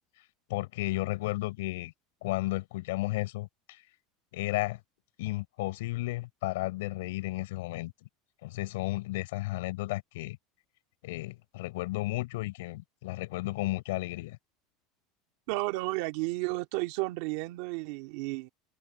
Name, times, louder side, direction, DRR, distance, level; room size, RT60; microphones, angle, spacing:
voice 1, 0.5-1.9 2.2-3.8 4.3-4.8 5.2-7.9 8.4-10.4 11.0-14.4, left 19 dB, 85° left, 5.3 m, -33 dB
voice 2, 15.5-18.5, right 22 dB, 55° right, 2.1 m, -32 dB
open air
supercardioid pair, 175°, 0 cm